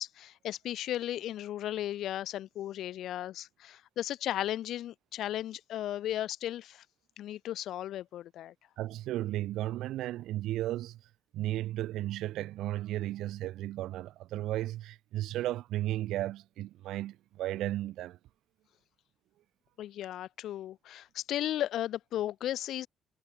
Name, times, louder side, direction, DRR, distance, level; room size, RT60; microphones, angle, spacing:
voice 1, 0.0-6.8 7.2-8.5 19.8-22.9, left 12 dB, 80° left, 0.8 m, -35 dB
voice 2, 8.8-11.0 11.3-18.2, right 14 dB, 85° right, 0.4 m, -34 dB
cardioid pair, 90°, 0 cm